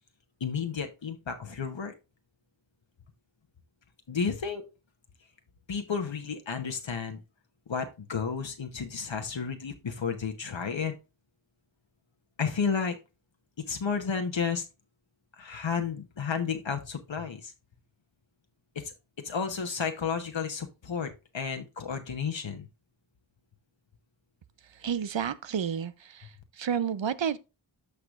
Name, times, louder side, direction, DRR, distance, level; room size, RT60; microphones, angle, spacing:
voice 1, 0.4-1.9 4.1-4.6 5.7-7.2 7.7-10.9 12.4-13.0 13.6-14.7 15.4-17.5 18.7-18.9 19.2-22.7, left 6 dB, 75° left, 1.0 m, -32 dB
voice 2, 24.7-27.4, right 7 dB, 75° right, 0.7 m, -31 dB
13.5 x 4.8 x 2.4 m
wide cardioid pair, 55°, 46 cm